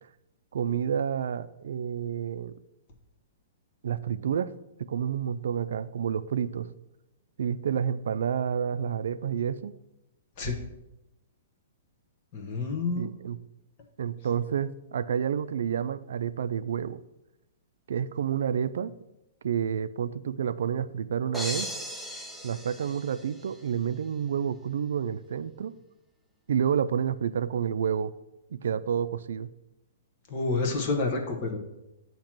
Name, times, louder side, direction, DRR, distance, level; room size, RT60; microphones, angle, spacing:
voice 1, 0.5-2.5 3.8-4.5 4.8-6.7 7.4-9.7 12.9-13.4 14.0-17.0 17.9-18.9 19.4-21.7 22.4-25.7 26.5-28.1 28.6-29.5, right 8 dB, 75° right, 14 dB, 0.3 m, -29 dB
voice 2, 12.3-13.1 30.3-31.6, left 3 dB, 35° left, 3 dB, 1.0 m, -28 dB
sound 1, 21.3-23.6, equal, 5° left, 0.4 m, -37 dB
8.7 x 2.9 x 5.9 m, 0.94 s
hypercardioid pair, 165°, 0 cm